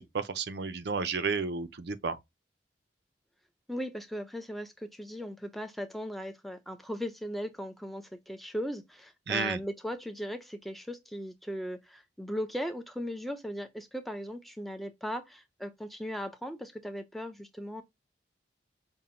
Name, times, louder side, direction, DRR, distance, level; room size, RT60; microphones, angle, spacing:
voice 1, 0.0-2.2 9.3-9.6, right 5 dB, 60° right, 0.5 m, -32 dB
voice 2, 3.7-17.8, equal, ahead, 0.5 m, -38 dB
5.4 x 2.2 x 2.8 m
head